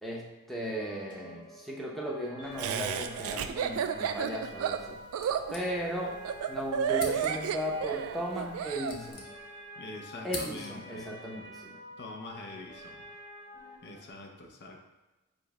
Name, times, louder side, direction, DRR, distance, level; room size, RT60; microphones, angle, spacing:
voice 1, 0.0-5.0 5.5-6.1 6.5-9.2 10.2-11.8, equal, ahead, -3 dB, 0.7 m, -36 dB
sound 1, 0.7-14.1, equal, 20° left, 1.1 m, -49 dB
Laughter, 2.6-8.9, right 8 dB, 70° right, 0.3 m, -32 dB
sound 2, 5.2-6.2 6.4-6.5 6.9-7.6 8.4-9.7 10.0-11.0, left 3 dB, 90° left, 0.8 m, -44 dB
voice 2, 9.8-11.1 12.0-13.0 13.8-14.8, left 2 dB, 50° left, 2 dB, 0.7 m, -44 dB
5.0 x 2.2 x 4.7 m, 1.1 s
head